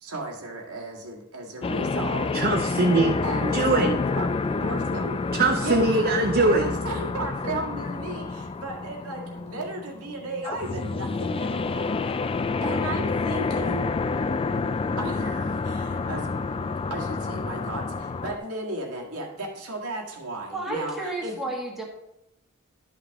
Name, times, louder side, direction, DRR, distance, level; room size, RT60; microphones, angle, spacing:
voice 1, 0.0-2.3 3.2-4.3 4.5-5.2 5.6-6.1 6.4-12.1 12.6-13.9 15.0-16.3 16.9-21.0 21.2-21.4, right 2 dB, 90° right, 0 dB, 1.9 m, -34 dB
sound 1, 1.6-18.4, left 4 dB, 25° left, 0.3 m, -28 dB
voice 2, 2.3-3.2 3.5-3.9 5.3-6.7, right 2 dB, 45° right, 2 dB, 0.7 m, -21 dB
voice 3, 20.5-21.8, right 2 dB, ahead, -2 dB, 1.7 m, -32 dB
12.0 x 5.8 x 3.5 m, 0.85 s
head